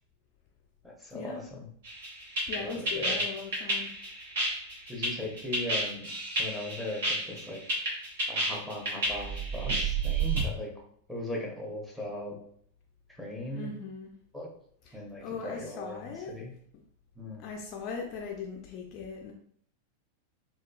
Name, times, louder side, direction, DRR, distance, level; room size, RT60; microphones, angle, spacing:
voice 1, 0.8-1.7 2.6-3.2 4.9-7.6 8.3-10.7 11.1-12.4 13.1-13.7 14.3-14.5 14.9-16.5 17.2-17.5, left 1 dB, ahead, -2 dB, 0.9 m, -38 dB
sound 1, 1.9-10.4, right 2 dB, 55° right, 1.2 m, -30 dB
voice 2, 2.5-3.9 13.5-14.1 14.9-15.0 15.2-16.3 17.4-19.3, left 5 dB, 40° left, 0 dB, 0.4 m, -39 dB
3.5 x 2.2 x 2.3 m, 0.62 s
figure-of-eight pair, 90°, 0 cm